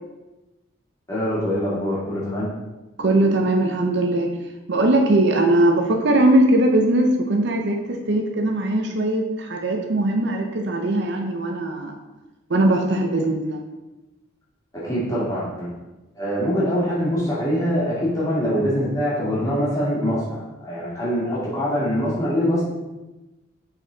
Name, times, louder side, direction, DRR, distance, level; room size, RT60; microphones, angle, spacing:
voice 1, 1.1-2.5 14.7-15.7 16.1-22.6, equal, 15° left, -8 dB, 2.2 m, -23 dB
voice 2, 3.0-4.3 4.7-11.9 12.5-13.6, right 1 dB, 55° right, 2 dB, 0.6 m, -20 dB
6.1 x 4.3 x 3.9 m, 1.1 s
head